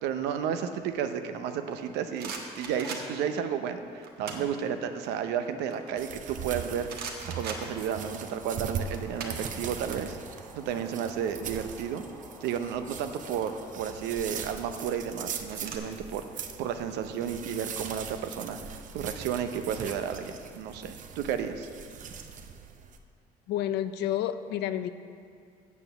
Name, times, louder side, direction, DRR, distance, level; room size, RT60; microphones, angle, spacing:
voice 1, 0.0-10.2 10.5-12.0 12.4-16.2 16.6-21.7, right 8 dB, 90° right, 8 dB, 0.7 m, -32 dB
sound 1, 1.7-3.4 4.0-4.6 5.0-6.5 6.9-8.3 8.5-10.0 10.2-10.4 10.7-12.3 13.2-13.6 14.3-15.8, right 5 dB, 70° right, 1.3 m, -41 dB
sound 2, 6.0-23.0, right 7 dB, 50° right, 0.7 m, -41 dB
sound 3, 7.2-13.8, left 1 dB, 10° left, 1.5 m, -51 dB
voice 2, 23.5-24.9, left 11 dB, 80° left, 12 dB, 0.5 m, -30 dB
8.3 x 7.1 x 6.9 m, 2.3 s
cardioid pair, 110°, 17 cm